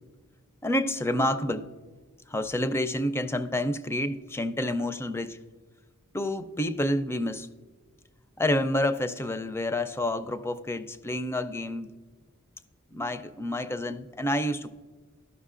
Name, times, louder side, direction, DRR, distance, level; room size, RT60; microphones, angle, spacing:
voice 1, 0.6-1.7 2.3-5.4 6.1-7.5 8.4-11.9 12.9-14.7, left 1 dB, 10° left, 0.4 m, -28 dB
13.5 x 5.9 x 2.5 m
head